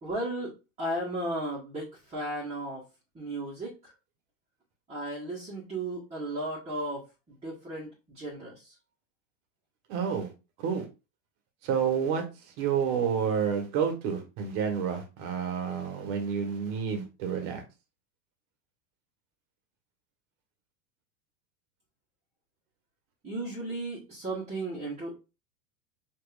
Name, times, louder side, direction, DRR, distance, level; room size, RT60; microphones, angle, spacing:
voice 1, 0.0-2.8 3.1-3.9 4.9-8.7 23.2-25.2, right 1 dB, 15° right, -6 dB, 1.5 m, -35 dB
voice 2, 9.9-10.3 10.6-10.8 11.6-12.2 12.6-17.6, right 7 dB, 50° right, 4 dB, 1.4 m, -29 dB
5.2 x 2.9 x 2.4 m, 0.29 s
supercardioid pair, 130°, 37 cm